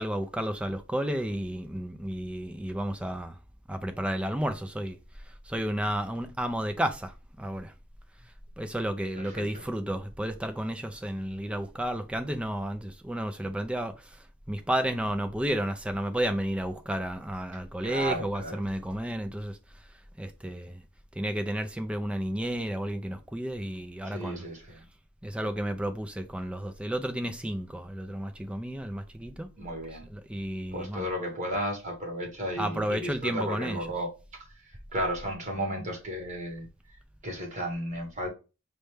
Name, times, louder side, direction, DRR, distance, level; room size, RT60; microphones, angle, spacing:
voice 1, 0.0-3.4 3.7-5.0 5.5-7.7 8.6-14.1 14.5-19.6 20.2-20.8 21.2-24.5 25.2-29.5 30.1-31.1 32.6-33.9, right 1 dB, 5° right, 0.3 m, -32 dB
voice 2, 9.2-9.6 17.8-18.6 24.0-24.8 29.6-30.1 30.7-34.1 34.9-36.7 37.2-38.3, equal, 35° right, 1.4 m, -34 dB
5.2 x 2.2 x 3.2 m
head